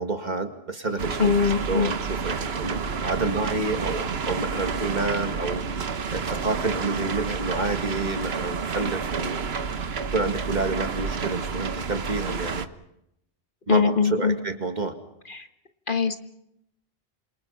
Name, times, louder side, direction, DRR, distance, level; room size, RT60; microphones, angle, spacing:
voice 1, 0.0-9.4 10.1-12.7 13.7-14.9, right 3 dB, 45° right, 7 dB, 2.3 m, -29 dB
sound 1, 1.0-12.7, right 5 dB, 70° right, 1.4 m, -30 dB
voice 2, 1.2-1.9 13.7-14.4 15.3-15.5 15.9-16.2, left 5 dB, 50° left, 7 dB, 1.8 m, -22 dB
27.5 x 27.0 x 5.7 m, 0.80 s
omnidirectional pair, 1.1 m